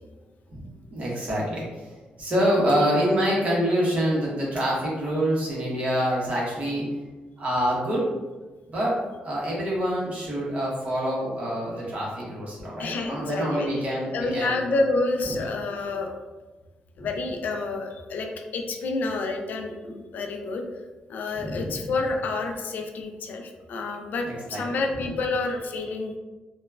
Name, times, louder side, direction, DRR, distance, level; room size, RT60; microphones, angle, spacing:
voice 1, 0.9-6.8 7.4-8.0 8.7-14.5 15.2-15.4 17.0-17.1 21.4-21.8 24.2-24.8, equal, 45° right, -5 dB, 1.0 m, -26 dB
voice 2, 12.8-13.7 14.1-16.1 17.0-20.6 21.1-26.2, left 3 dB, 70° left, 3 dB, 0.3 m, -29 dB
2.9 x 2.2 x 2.3 m, 1.2 s
cardioid pair, 120°, 3 cm